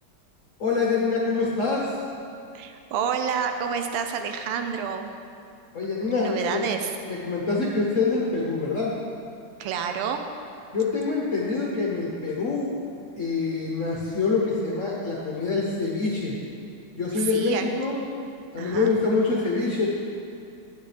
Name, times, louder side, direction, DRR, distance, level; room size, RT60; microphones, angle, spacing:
voice 1, 0.6-1.9 5.7-6.6 7.1-8.9 10.7-12.7 13.2-16.4 17.0-18.0 18.5-20.0, left 4 dB, 60° left, -3 dB, 0.8 m, -25 dB
voice 2, 2.5-5.1 6.2-7.0 9.6-10.3 17.1-17.6 18.6-18.9, right 7 dB, 85° right, 6 dB, 1.6 m, -29 dB
11.5 x 8.0 x 3.3 m, 2.5 s
omnidirectional pair, 2.4 m